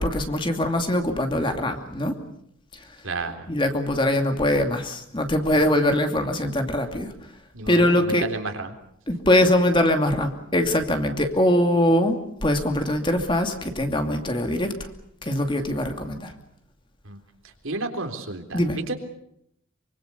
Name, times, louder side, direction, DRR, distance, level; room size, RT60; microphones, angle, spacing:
voice 1, 0.0-2.2 3.5-7.1 7.7-8.3 9.1-14.9 15.2-16.3 18.5-18.8, left 1 dB, 25° left, 5 dB, 2.6 m, -22 dB
voice 2, 3.0-3.5 7.5-8.8 17.0-17.2 17.6-19.0, right 3 dB, 75° right, 6 dB, 3.7 m, -31 dB
25.0 x 24.5 x 6.9 m, 0.72 s
head